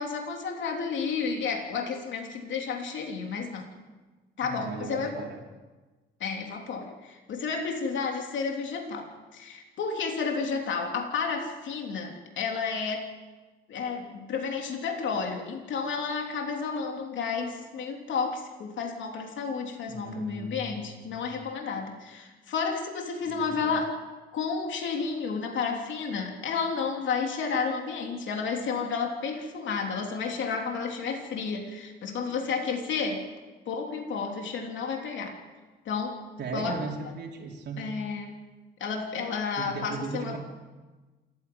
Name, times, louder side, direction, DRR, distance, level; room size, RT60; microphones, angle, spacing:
voice 1, 0.0-3.7 4.4-5.2 6.2-13.1 13.7-24.0 24.3-33.2 33.6-35.4 35.8-36.2 36.5-36.7 37.0-37.1 37.8-38.4 38.8-40.4, left 5 dB, 70° left, 2 dB, 3.3 m, -31 dB
voice 2, 4.4-5.4 19.9-21.4 23.4-23.7 36.4-37.8 39.6-40.4, right 4 dB, 60° right, -1 dB, 3.2 m, -37 dB
27.5 x 10.5 x 9.4 m, 1.3 s
cardioid pair, 90°, 20 cm